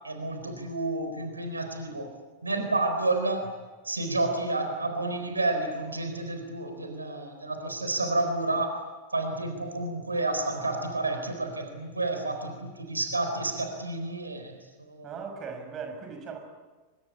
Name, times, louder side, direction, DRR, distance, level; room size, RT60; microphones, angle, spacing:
voice 1, 0.0-2.1 2.4-3.4 3.8-8.7 9.1-15.1, right 2 dB, 80° right, 5 dB, 4.1 m, -30 dB
voice 2, 15.0-16.4, right 5 dB, 30° right, 5 dB, 6.7 m, -38 dB
26.0 x 24.0 x 8.7 m, 1.3 s
figure-of-eight pair, 90°, 0 cm